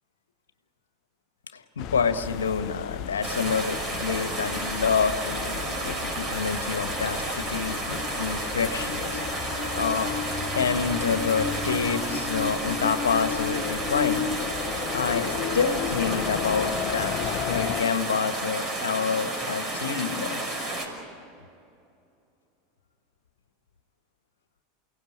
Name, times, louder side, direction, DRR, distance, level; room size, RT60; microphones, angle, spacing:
voice 1, 1.5-9.2 9.7-10.1 10.5-14.2 14.9-17.1 17.5-20.4, left 6 dB, 80° left, 10 dB, 1.5 m, -28 dB
sound 1, 1.8-17.8, left 9 dB, 45° left, 1.0 m, -33 dB
sound 2, 3.2-20.9, right 2 dB, 30° right, 6.1 m, -31 dB
29.0 x 17.5 x 8.7 m, 2.6 s
figure-of-eight pair, 85°, 0 cm